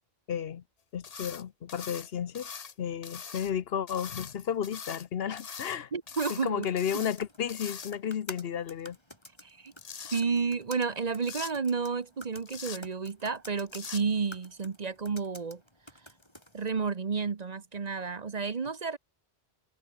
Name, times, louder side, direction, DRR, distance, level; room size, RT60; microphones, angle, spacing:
voice 1, 0.3-0.6 0.9-2.5 2.8-5.9 6.3-9.0, left 8 dB, 75° left, 1.0 m, -33 dB
sound 1, 1.0-1.4 1.7-2.7 3.0-3.5 3.9-5.1 5.4-5.8 6.1-6.4 6.8-7.2 7.5-8.2 9.5-10.2 11.2-11.5 12.4-12.8 13.7-14.0, left 6 dB, 40° left, 0.8 m, -42 dB
voice 2, 5.9-6.7 6.9-7.0 9.4-9.7 10.1-15.6 16.5-19.0, right 5 dB, 45° right, 1.0 m, -31 dB
sound 2, 6.1-16.6, left 1 dB, 25° left, 6.8 m, -51 dB
omnidirectional pair, 1.0 m